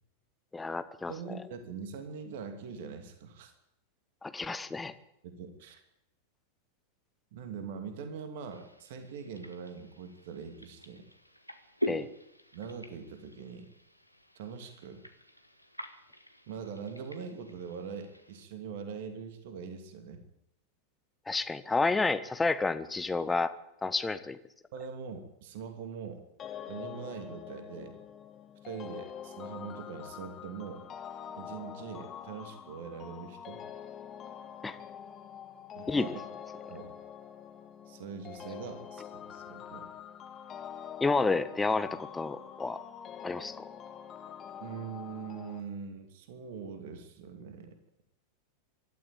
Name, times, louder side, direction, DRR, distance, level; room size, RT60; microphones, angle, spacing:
voice 1, 0.5-1.1 4.2-4.9 11.9-12.1 21.3-23.5 23.8-24.4 34.6-34.8 35.9-36.1 41.0-42.8 43.2-43.6, left 3 dB, 10° left, 12 dB, 1.4 m, -30 dB
voice 2, 1.1-3.5 5.2-5.8 7.3-11.0 11.8-12.0 12.5-13.8 14.3-15.0 16.5-20.2 24.7-26.2 26.7-28.0 28.6-30.9 31.4-33.6 35.7-36.1 36.7-36.9 37.9-39.9 44.6-47.8, right 6 dB, 50° right, 7 dB, 2.7 m, -42 dB
sound 1, 8.5-18.5, left 1 dB, 90° left, 1.7 m, -44 dB
sound 2, 26.4-45.6, left 8 dB, 30° left, 1.8 m, -45 dB
24.5 x 13.0 x 9.0 m, 0.80 s
figure-of-eight pair, 90°, 0 cm